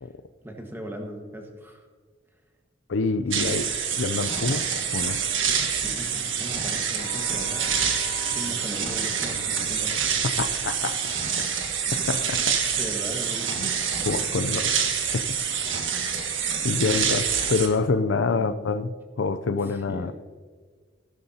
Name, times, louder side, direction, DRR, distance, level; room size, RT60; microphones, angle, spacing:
voice 1, 0.4-1.9 3.2-3.7 4.3-4.4 5.8-8.0 8.3-10.0 12.8-13.7 16.8-17.0 18.3-18.6 19.5-20.1, right 1 dB, 10° right, 2 dB, 1.5 m, -38 dB
voice 2, 2.9-3.7 4.0-4.7 4.9-5.2 10.4-11.0 11.4-11.7 12.1-12.6 13.6-13.7 14.1-14.7 15.1-15.3 16.6-20.1, left 4 dB, 70° left, 12 dB, 0.5 m, -26 dB
sound 1, 3.3-17.7, right 7 dB, 75° right, 1.5 m, -26 dB
Bowed string instrument, 6.9-11.4, left 6 dB, 45° left, 1.0 m, -44 dB
15.5 x 12.5 x 2.8 m, 1.6 s
head